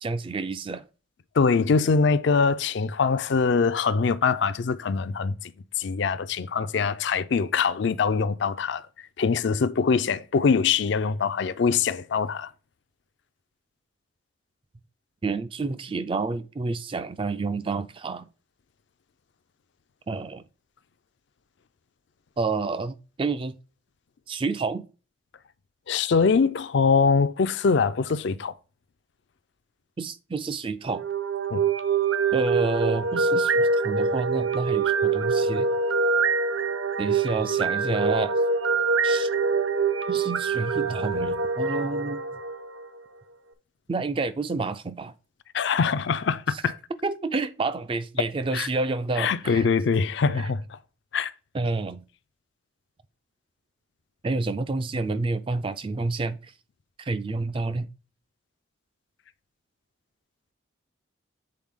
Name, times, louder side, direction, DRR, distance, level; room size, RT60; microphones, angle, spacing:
voice 1, 0.0-0.8 15.2-18.3 20.1-20.4 22.4-23.6 24.3-24.8 30.0-31.0 32.3-35.7 37.0-38.3 39.0-39.3 40.1-42.2 43.9-45.1 46.5-46.6 47.0-49.7 51.5-52.0 54.2-56.4 57.0-57.9, right 3 dB, 25° right, 0.3 m, -29 dB
voice 2, 1.4-5.5 5.8-8.8 9.2-12.5 25.9-28.5 31.5-31.6 45.5-46.8 48.5-48.7 49.2-50.6 51.1-51.3, left 5 dB, 60° left, 0.4 m, -23 dB
sound 1, 30.9-43.0, right 4 dB, 75° right, 0.7 m, -25 dB
7.6 x 4.0 x 3.6 m
head